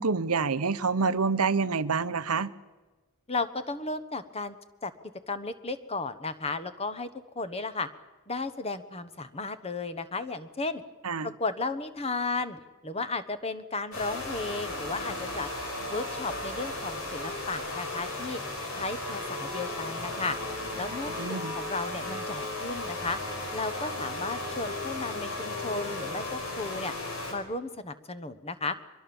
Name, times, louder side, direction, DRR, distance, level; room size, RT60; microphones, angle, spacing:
voice 1, 0.0-2.5 11.0-11.3 21.2-21.5, right 4 dB, 85° right, 13 dB, 0.9 m, -27 dB
voice 2, 3.3-4.5 4.8-4.9 5.3-7.1 7.3-7.9 8.3-10.8 11.2-15.5 15.9-18.4 18.7-20.4 20.8-23.2 23.5-26.9 27.3-28.7, left 3 dB, 25° left, 11 dB, 1.2 m, -34 dB
sound 1, 13.9-27.3, left 2 dB, 65° left, 4.9 m, -35 dB
23.5 x 22.5 x 7.1 m, 1.2 s
head